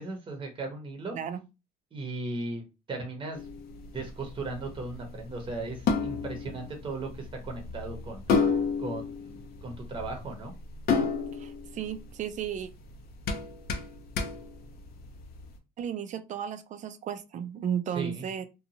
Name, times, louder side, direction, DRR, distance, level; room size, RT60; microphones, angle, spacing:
voice 1, 0.0-1.2 1.9-3.4 3.9-8.2 8.8-9.3 9.6-10.5 17.9-18.2, right 3 dB, 30° right, 0.8 m, -37 dB
sound 1, 3.3-15.5, left 5 dB, 65° left, 0.6 m, -32 dB
voice 2, 11.3-12.7 15.8-18.5, right 8 dB, 45° right, 0.4 m, -34 dB
2.6 x 2.3 x 2.8 m
cardioid pair, 110°, 17 cm